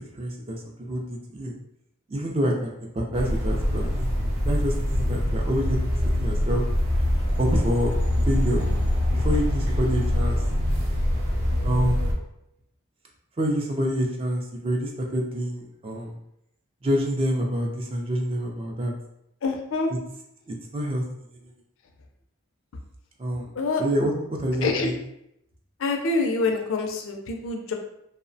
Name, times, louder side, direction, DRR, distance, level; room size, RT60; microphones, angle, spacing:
voice 1, 0.0-1.5 2.1-4.1 4.5-5.8 6.2-6.6 7.4-7.9 8.2-8.7 9.1-10.4 11.6-12.1 13.4-16.1 16.8-18.9 20.5-21.0 23.2-23.5 23.8-24.9, equal, 25° right, 0 dB, 0.3 m, -27 dB
sound 1, 3.1-12.1, left 1 dB, 80° right, 0.6 m, -24 dB
voice 2, 19.4-19.9 23.6-23.8 24.6-24.9 25.8-27.7, left 3 dB, 65° left, 3 dB, 0.4 m, -26 dB
2.7 x 2.0 x 2.6 m, 0.79 s
head